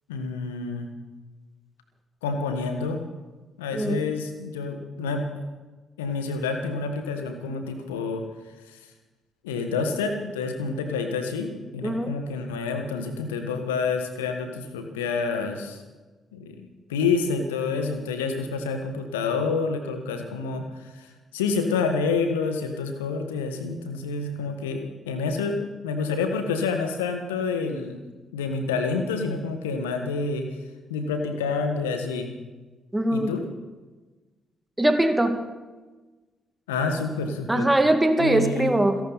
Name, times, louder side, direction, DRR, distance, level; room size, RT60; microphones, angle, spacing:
voice 1, 0.1-0.9 2.2-3.0 3.6-5.2 6.0-8.2 9.4-15.8 16.3-20.6 21.0-21.1 21.3-25.6 25.8-28.0 28.3-30.5 30.9-32.3 33.1-33.4 36.7-37.7 38.2-38.7, left 4 dB, 80° left, 6 dB, 1.6 m, -28 dB
voice 2, 3.7-4.1 11.8-12.2 32.9-33.4 34.8-35.4 37.5-39.0, right 1 dB, 10° right, 6 dB, 2.2 m, -22 dB
28.5 x 11.5 x 4.2 m, 1.2 s
figure-of-eight pair, 40°, 0 cm